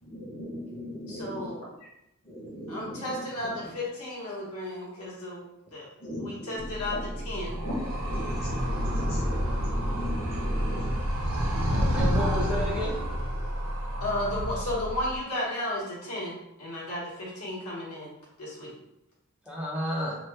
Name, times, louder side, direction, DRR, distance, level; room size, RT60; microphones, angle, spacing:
voice 1, 0.0-1.5 2.2-3.1 3.4-3.5 6.0-7.0 7.5-11.0, equal, 45° left, -5 dB, 1.0 m, -38 dB
voice 2, 1.1-1.7 2.7-5.5 5.7-5.8 6.2-7.0 7.2-7.6 14.0-18.1 18.4-18.7, left 1 dB, 75° left, -5 dB, 1.0 m, -33 dB
Animal, 6.6-15.2, equal, 75° right, 0.7 m, -29 dB
voice 3, 11.7-13.0 19.5-20.2, equal, 5° right, -5 dB, 0.5 m, -31 dB
2.8 x 2.1 x 3.3 m, 0.87 s
head